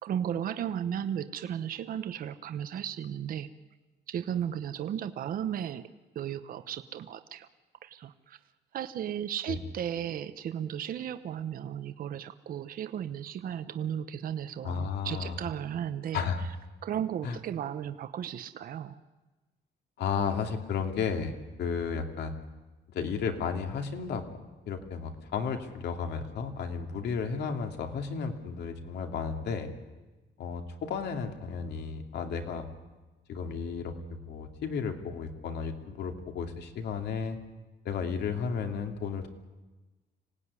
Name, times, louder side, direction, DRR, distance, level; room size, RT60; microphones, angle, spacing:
voice 1, 0.0-3.5 4.1-5.8 6.1-7.5 7.8-8.4 8.7-16.2 16.8-19.0, right 9 dB, 50° right, 11 dB, 1.0 m, -35 dB
voice 2, 14.6-15.4 16.1-16.4 17.2-17.4 20.0-22.3 22.9-29.7 30.4-32.6 33.3-37.4 37.8-39.3, left 6 dB, 65° left, 5 dB, 2.6 m, -33 dB
26.0 x 18.5 x 9.8 m, 1.2 s
cardioid pair, 175°, 19 cm